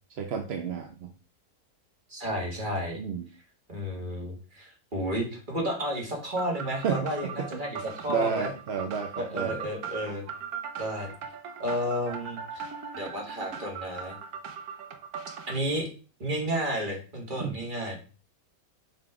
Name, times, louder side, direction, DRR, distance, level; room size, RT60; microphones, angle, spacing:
voice 1, 0.2-1.1 3.0-3.2 6.6-7.5 8.1-9.7 17.4-17.6, right 6 dB, 60° right, 5 dB, 0.7 m, -31 dB
voice 2, 2.1-3.0 3.7-8.5 9.2-10.2 10.8-11.1 11.6-12.6 12.9-14.2 15.5-15.9 16.2-18.0, equal, 35° right, 0 dB, 2.0 m, -32 dB
sound 1, 6.4-15.6, right 6 dB, 75° right, 1.3 m, -40 dB
5.8 x 3.7 x 4.7 m, 0.36 s
omnidirectional pair, 1.6 m